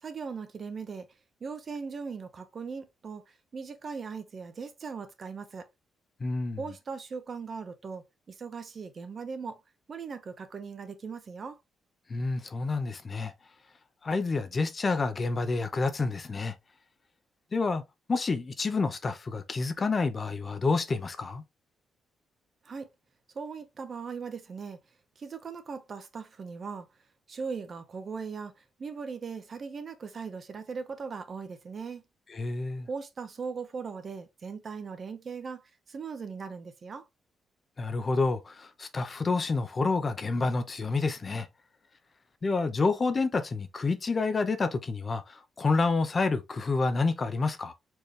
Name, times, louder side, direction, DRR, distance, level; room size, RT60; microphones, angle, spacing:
voice 1, 0.0-1.1 1.4-5.7 6.6-9.6 9.9-11.6 22.6-22.9 23.3-24.8 25.2-26.9 27.3-32.0 32.9-37.1, right 5 dB, 45° right, 0.9 m, -39 dB
voice 2, 6.2-6.6 12.1-13.3 14.0-16.5 17.5-17.8 18.1-21.4 32.3-32.9 37.8-41.5 42.4-47.7, left 3 dB, 35° left, 0.7 m, -28 dB
4.4 x 3.3 x 3.2 m
cardioid pair, 105°, 0 cm